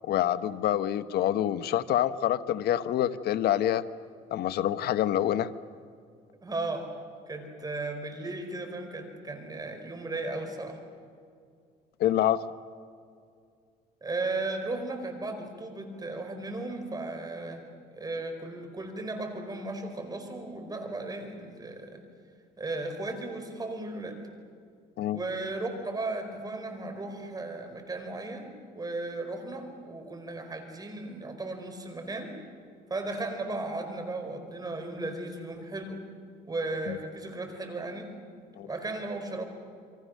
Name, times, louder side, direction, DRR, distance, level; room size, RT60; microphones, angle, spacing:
voice 1, 0.1-3.8 4.3-5.5 12.0-12.4 25.0-25.2 36.9-37.0 38.6-38.7, left 11 dB, 70° left, 12 dB, 1.1 m, -26 dB
voice 2, 6.4-6.9 7.3-10.8 14.0-17.6 17.9-22.0 22.6-24.2 25.1-28.5 28.7-32.3 32.9-36.0 36.5-38.1 38.6-39.5, right 2 dB, 20° right, 5 dB, 4.7 m, -35 dB
28.5 x 24.0 x 6.5 m, 2.3 s
cardioid pair, 110°, 17 cm